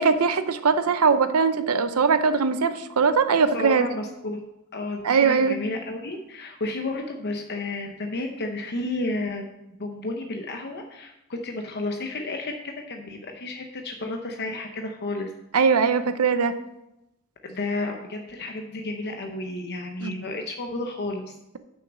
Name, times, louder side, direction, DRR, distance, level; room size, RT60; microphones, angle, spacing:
voice 1, 0.0-3.9 5.0-5.6 15.5-16.5 20.0-20.2, right 5 dB, 80° right, 11 dB, 0.7 m, -21 dB
voice 2, 3.5-4.4 4.7-9.5 9.8-12.5 12.9-15.3 17.4-21.4, left 2 dB, 50° left, 3 dB, 0.8 m, -32 dB
6.4 x 6.2 x 7.3 m, 0.89 s
head